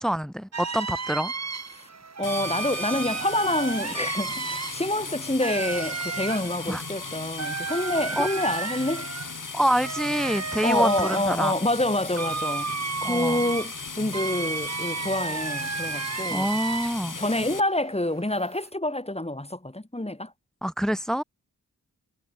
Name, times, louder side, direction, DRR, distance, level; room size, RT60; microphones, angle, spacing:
voice 1, 0.0-1.3 6.7-6.8 8.2-8.3 9.5-11.5 13.0-13.4 16.3-17.2 20.6-21.2, equal, ahead, 2.0 m, -26 dB
sound 1, 0.5-17.2 17.5-18.7, right 5 dB, 50° right, 1.6 m, -33 dB
sound 2, 2.2-17.6, left 4 dB, 60° left, 5.9 m, -37 dB
voice 2, 2.2-9.1 10.6-12.7 13.0-16.5 17.2-20.3, left 1 dB, 15° left, 6.5 m, -27 dB
wide cardioid pair, 60°, 35 cm